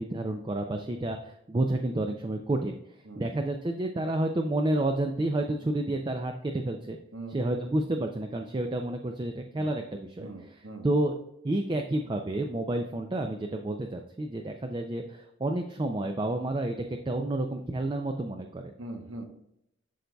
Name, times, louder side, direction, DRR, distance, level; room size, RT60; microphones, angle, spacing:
voice 1, 0.0-2.7 3.2-7.0 7.3-10.3 10.8-11.1 11.4-16.8 17.1-18.7, right 1 dB, 25° right, 4 dB, 0.4 m, -30 dB
voice 2, 10.2-10.9 18.8-19.3, right 2 dB, 85° right, 5 dB, 1.0 m, -41 dB
11.0 x 3.9 x 2.3 m, 0.79 s
head